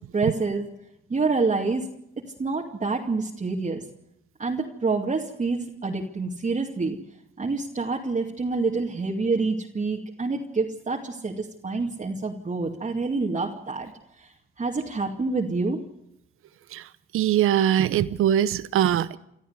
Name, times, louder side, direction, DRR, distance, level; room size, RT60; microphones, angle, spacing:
voice 1, 0.1-0.7 1.1-1.9 2.4-3.8 4.4-7.0 7.4-13.9 14.2-14.3 14.6-15.8, right 3 dB, 35° right, -2 dB, 2.4 m, -27 dB
voice 2, 17.1-19.2, right 10 dB, 85° right, 15 dB, 0.8 m, -22 dB
25.5 x 13.5 x 8.1 m, 0.80 s
cardioid pair, 70°, 21 cm